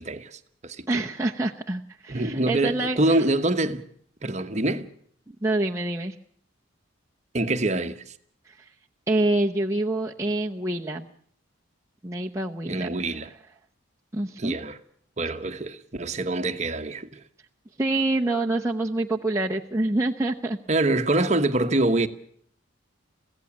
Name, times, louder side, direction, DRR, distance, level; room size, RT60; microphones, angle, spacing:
voice 1, 0.0-1.0 2.1-3.9 4.2-4.9 7.3-8.1 12.7-13.3 14.4-14.8 15.2-17.2 20.7-22.1, right 2 dB, 35° right, 1.1 m, -25 dB
voice 2, 0.9-3.2 5.3-6.1 8.5-8.7 9.1-11.1 12.0-13.0 14.1-14.6 17.8-20.6, right 2 dB, 15° right, 0.8 m, -26 dB
23.5 x 16.0 x 7.2 m
head